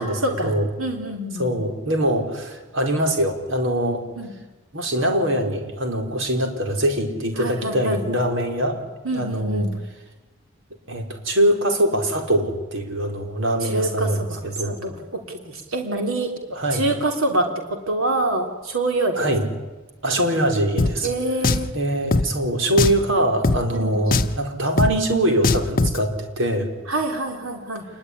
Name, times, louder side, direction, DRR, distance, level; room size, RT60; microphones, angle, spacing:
voice 1, 0.0-0.5 0.8-1.5 4.2-4.3 7.4-8.0 9.0-9.7 13.6-14.9 15.3-16.3 16.7-17.5 17.9-19.2 21.0-21.7 23.7-23.9 26.9-27.8, right 2 dB, 85° right, 3 dB, 3.3 m, -25 dB
voice 2, 1.4-4.0 4.7-8.8 9.1-9.7 10.9-14.8 16.5-16.8 19.1-19.4 20.0-21.1 21.7-26.7, right 1 dB, 65° right, 4 dB, 4.8 m, -23 dB
Drum, 20.8-20.9 21.4-21.7 22.1-22.2 22.8-23.0 23.4-23.6 24.1-24.4 24.8-24.9 25.4-26.0, left 3 dB, 45° left, 1.1 m, -20 dB
27.5 x 21.5 x 10.0 m, 1.1 s
head